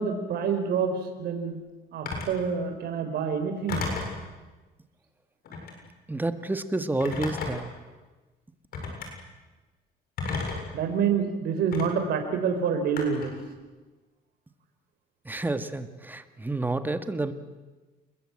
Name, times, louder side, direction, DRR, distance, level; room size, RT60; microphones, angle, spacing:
voice 1, 0.0-1.6 1.9-3.8 10.7-13.3, right 6 dB, 70° right, 5 dB, 4.3 m, -27 dB
Telephone, 2.1-2.4 3.7-4.2 5.4-5.8 7.0-7.7 8.7-9.1 10.2-10.7 11.7-11.9 13.0-13.4, left 4 dB, 65° left, 7.4 m, -32 dB
voice 2, 6.1-7.7 15.3-17.3, right 2 dB, 10° right, 10 dB, 1.9 m, -29 dB
28.5 x 22.0 x 8.8 m, 1.2 s
cardioid pair, 110°, 17 cm